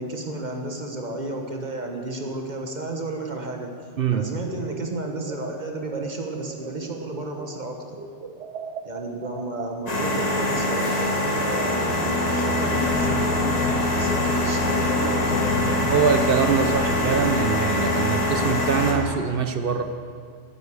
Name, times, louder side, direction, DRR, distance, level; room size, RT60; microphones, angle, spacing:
voice 1, 0.0-3.7 4.1-8.0 8.8-15.8, right 2 dB, 40° right, 3 dB, 1.3 m, -32 dB
voice 2, 4.0-4.3 15.9-19.8, right 6 dB, 60° right, 8 dB, 0.8 m, -23 dB
sound 1, 4.4-7.6 7.9-11.0, right 4 dB, 75° right, 1.2 m, -39 dB
sound 2, 9.9-18.9, left 2 dB, 35° left, 1.5 m, -24 dB
sound 3, 12.5-18.3 18.6-19.2, left 5 dB, 70° left, 0.9 m, -33 dB
9.9 x 8.0 x 8.3 m, 2.2 s
omnidirectional pair, 1.2 m